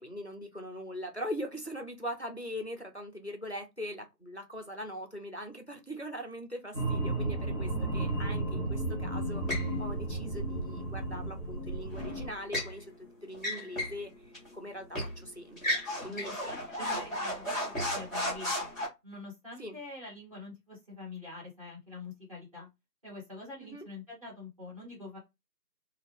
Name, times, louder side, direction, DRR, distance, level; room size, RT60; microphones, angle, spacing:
voice 1, 0.0-12.9 13.2-16.3 16.8-17.0 19.6-19.8 23.6-23.9, equal, 45° left, 0.4 m, -41 dB
sound 1, 6.7-12.3, right 2 dB, 45° right, 1.0 m, -33 dB
sound 2, 9.5-9.7 11.9-12.7 13.3-14.0 14.3-14.5 14.9-15.2 15.6-18.9, left 1 dB, ahead, 0.7 m, -34 dB
voice 2, 16.1-18.7 19.0-22.7 23.0-25.2, left 3 dB, 20° right, 1.3 m, -45 dB
2.5 x 2.4 x 3.4 m
figure-of-eight pair, 170°, 50 cm